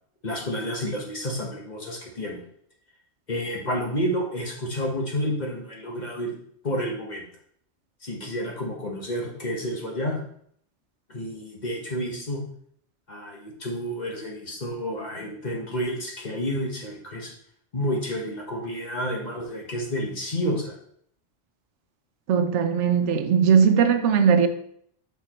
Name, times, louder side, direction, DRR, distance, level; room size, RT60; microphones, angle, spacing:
voice 1, 0.2-2.4 3.3-6.3 6.6-7.2 8.0-10.2 11.1-12.4 13.1-17.3 17.7-20.8, equal, 40° left, 1.3 m, -30 dB
voice 2, 22.3-24.5, right 7 dB, 85° right, 1.0 m, -19 dB
6.5 x 5.9 x 3.0 m
omnidirectional pair, 1.2 m